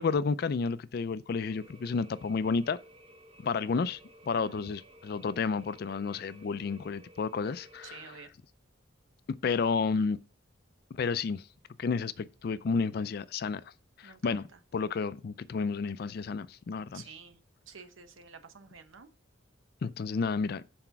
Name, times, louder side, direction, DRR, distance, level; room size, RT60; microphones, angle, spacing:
voice 1, 0.0-2.8 3.4-4.0 4.3-8.0 9.4-10.2 11.0-11.4 11.8-13.6 14.0-14.4 14.7-17.0 19.8-20.6, left 5 dB, 50° left, 0.4 m, -31 dB
sound 1, 1.3-8.2, equal, 30° right, 0.8 m, -56 dB
voice 2, 7.8-8.3 14.0-14.6 16.9-17.4 17.7-19.1, right 5 dB, 90° right, 0.9 m, -50 dB
6.0 x 4.3 x 5.8 m
head